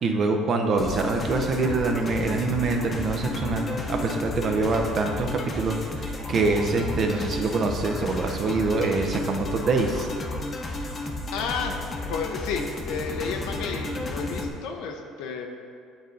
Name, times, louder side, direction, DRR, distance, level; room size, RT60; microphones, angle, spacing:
voice 1, 0.0-10.1, right 3 dB, 45° right, 3 dB, 0.6 m, -25 dB
sound 1, 0.8-14.5, left 2 dB, 35° left, 0.7 m, -33 dB
voice 2, 11.3-11.8 12.1-15.5, left 5 dB, 80° left, 3 dB, 0.6 m, -31 dB
8.7 x 4.0 x 3.8 m, 2.3 s
cardioid pair, 105°, 0 cm